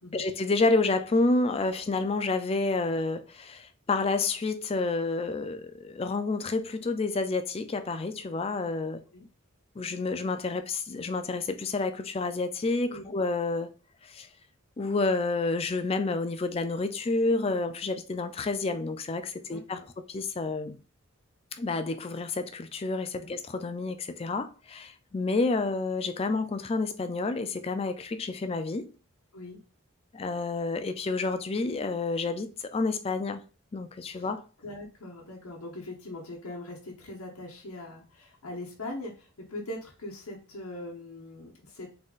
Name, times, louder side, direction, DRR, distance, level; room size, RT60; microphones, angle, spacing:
voice 1, 0.1-9.0 9.8-13.7 14.0-14.3 14.8-20.8 21.5-28.9 30.1-33.4 33.7-34.4, left 3 dB, 25° left, 0.3 m, -29 dB
voice 2, 19.5-19.9 23.2-23.3 29.3-29.6 34.1-34.3 34.6-41.9, left 1 dB, 90° left, 1.0 m, -41 dB
3.8 x 3.7 x 2.4 m
head